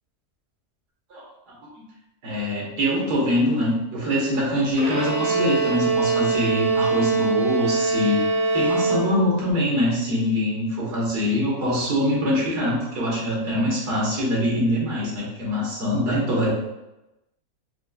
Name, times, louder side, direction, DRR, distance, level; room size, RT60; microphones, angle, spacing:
voice 1, 1.1-1.6 2.2-8.2 8.5-16.5, left 1 dB, 90° right, -5 dB, 1.7 m, -24 dB
Bowed string instrument, 4.8-9.5, right 4 dB, 65° right, 1.1 m, -23 dB
4.8 x 2.3 x 2.2 m, 0.95 s
omnidirectional pair, 1.6 m